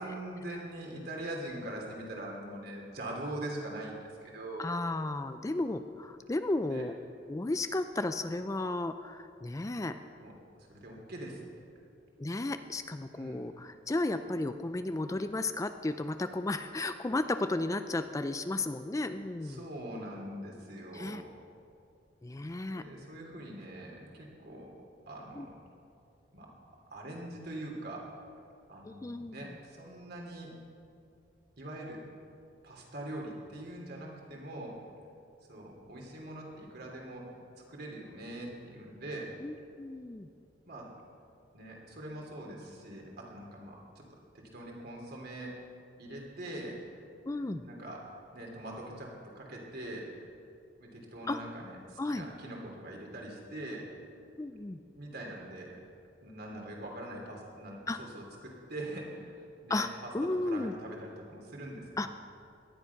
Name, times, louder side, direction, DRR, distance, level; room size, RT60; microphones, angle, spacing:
voice 1, 0.0-4.8 6.6-6.8 10.2-10.3 10.6-11.4 13.1-13.4 19.4-21.3 22.7-24.8 25.1-25.6 26.3-26.5 26.9-28.1 28.7-30.5 31.6-32.0 32.6-34.8 35.5-37.3 37.7-39.3 40.7-40.9 41.5-44.0 44.3-45.5 46.0-47.0 47.6-48.1 48.3-50.1 50.8-53.9 54.9-55.8 56.2-59.3 59.6-62.1, right 1 dB, 55° right, -1 dB, 3.2 m, -43 dB
voice 2, 4.6-6.9 7.3-9.9 12.2-19.7 20.9-21.2 22.2-22.8 25.3-25.5 28.8-29.5 39.4-40.3 47.3-47.6 51.3-51.4 52.0-52.3 54.4-54.8 57.9-58.0 59.7-59.9 60.1-60.7 62.0-62.1, left 2 dB, 15° left, 9 dB, 0.4 m, -34 dB
18.0 x 12.0 x 5.9 m, 2.5 s
head